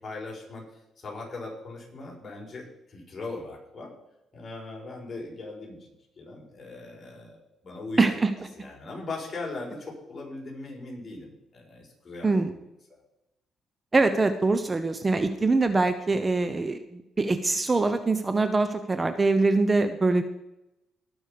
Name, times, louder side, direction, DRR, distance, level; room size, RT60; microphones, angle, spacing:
voice 1, 0.0-3.9 4.3-5.8 6.2-8.2 8.6-12.6 12.9-13.0, left 3 dB, 35° left, -2 dB, 5.5 m, -39 dB
voice 2, 8.0-8.3 12.2-12.5 13.9-20.2, right 3 dB, 25° right, 10 dB, 0.8 m, -23 dB
18.5 x 6.3 x 5.2 m, 0.90 s
cardioid pair, 90°, 0 cm